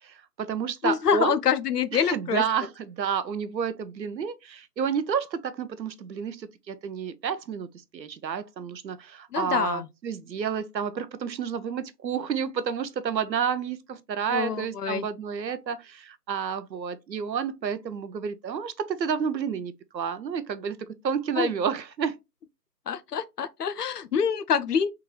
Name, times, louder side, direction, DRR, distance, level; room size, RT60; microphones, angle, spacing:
voice 1, 0.0-1.4 1.9-7.7 7.9-22.2, right 7 dB, 85° right, 0.6 m, -30 dB
voice 2, 0.8-2.4 9.3-9.9 14.3-15.1 21.4-21.5 22.9-24.9, left 7 dB, 70° left, 0.5 m, -26 dB
3.6 x 3.0 x 2.2 m
figure-of-eight pair, 155°, 50 cm